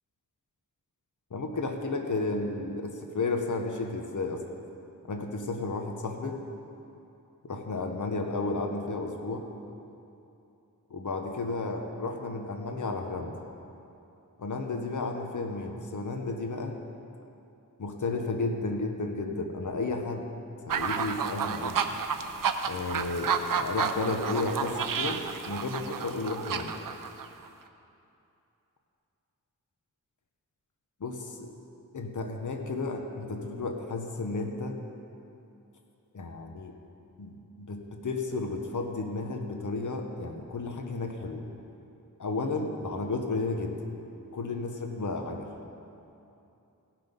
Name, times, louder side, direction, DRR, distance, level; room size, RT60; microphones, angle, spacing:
voice 1, 1.3-4.4 5.1-6.4 7.4-9.4 10.9-13.3 14.4-16.8 17.8-20.3 20.7-21.7 22.7-26.7 31.0-31.5 31.9-34.8 36.1-36.7 37.2-41.4 42.2-43.7 44.3-45.5, left 3 dB, 60° left, 4 dB, 1.1 m, -33 dB
sound 1, 20.7-27.5, right 6 dB, 70° right, 0.6 m, -31 dB
17.0 x 6.0 x 5.3 m, 2.7 s
wide cardioid pair, 100°, 34 cm